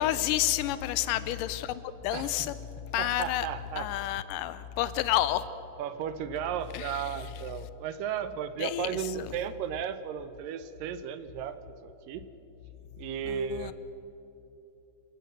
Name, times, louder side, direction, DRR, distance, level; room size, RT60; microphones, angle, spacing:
voice 1, 0.0-2.5 2.9-3.5 3.8-5.4 6.7-6.9 8.6-8.9 9.2-9.3 13.3-13.7, left 13 dB, 85° left, 14 dB, 2.3 m, -29 dB
voice 2, 2.1-2.5 3.0-3.9 5.8-12.3 13.0-13.7, right 9 dB, 90° right, 12 dB, 2.6 m, -35 dB
27.5 x 12.5 x 7.9 m, 3.0 s
omnidirectional pair, 3.8 m